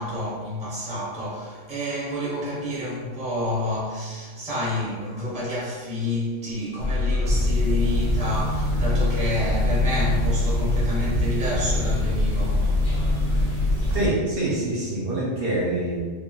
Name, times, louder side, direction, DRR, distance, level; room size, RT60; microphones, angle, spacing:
voice 1, 0.0-12.7 13.9-14.0, left 1 dB, 10° right, -8 dB, 0.5 m, -29 dB
sound 1, 6.8-14.1, left 2 dB, 80° left, 1.1 m, -24 dB
sound 2, 7.2-14.1, right 1 dB, 85° right, 0.9 m, -28 dB
voice 2, 13.9-16.0, right 1 dB, 60° right, -7 dB, 0.7 m, -25 dB
3.1 x 2.2 x 2.3 m, 1.5 s
omnidirectional pair, 1.3 m